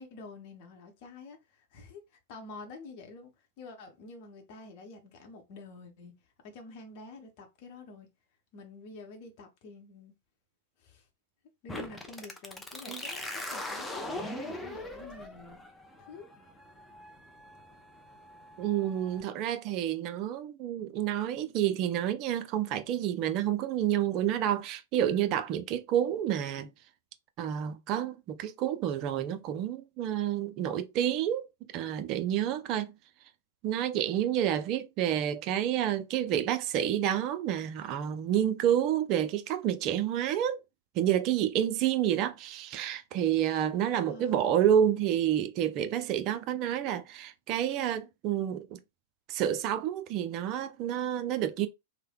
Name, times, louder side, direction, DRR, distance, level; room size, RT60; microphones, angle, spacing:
voice 1, 0.0-6.1 6.4-8.1 8.5-10.1 10.8-11.1 11.6-15.6 16.1-16.3 44.0-44.5, left 3 dB, 45° left, 0.8 m, -48 dB
sound 1, 11.7-19.2, left 1 dB, 10° left, 0.6 m, -41 dB
voice 2, 18.6-26.7 27.4-31.5 31.7-32.9 33.6-40.6 40.9-48.8 49.3-51.7, right 10 dB, 40° right, 0.4 m, -29 dB
3.2 x 2.1 x 2.3 m
figure-of-eight pair, 100°, 0 cm